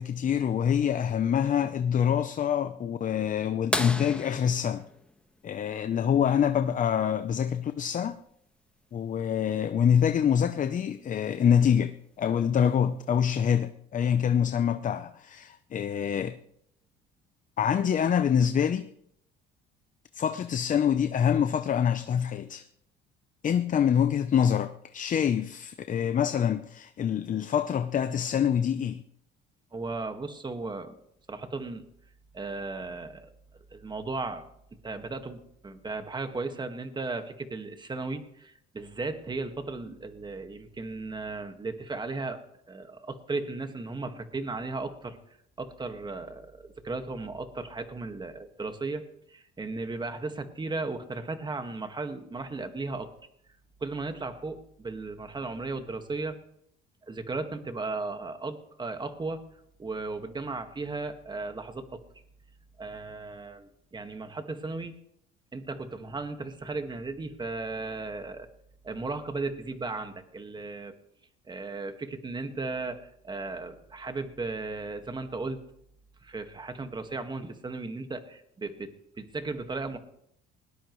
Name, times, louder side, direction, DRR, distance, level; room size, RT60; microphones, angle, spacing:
voice 1, 0.0-4.9 5.4-8.2 8.9-16.4 17.6-18.9 20.1-22.6 23.4-29.0, left 8 dB, 40° left, 0.7 m, -26 dB
sound 1, 3.7-6.2 8.1-8.2 10.4-10.5 12.2-12.5 13.3-13.4, left 1 dB, 5° left, 1.5 m, -34 dB
voice 2, 29.7-31.0 31.3-31.9 32.3-33.3 33.7-34.4 34.8-42.4 42.7-45.2 45.6-49.0 49.3-53.1 53.8-56.4 57.0-59.4 59.8-62.0 62.8-64.9 65.5-68.5 68.8-70.9 71.5-75.6 76.2-80.0, right 3 dB, 20° right, 1.8 m, -36 dB
20.5 x 19.0 x 3.2 m
cardioid pair, 105°, 21 cm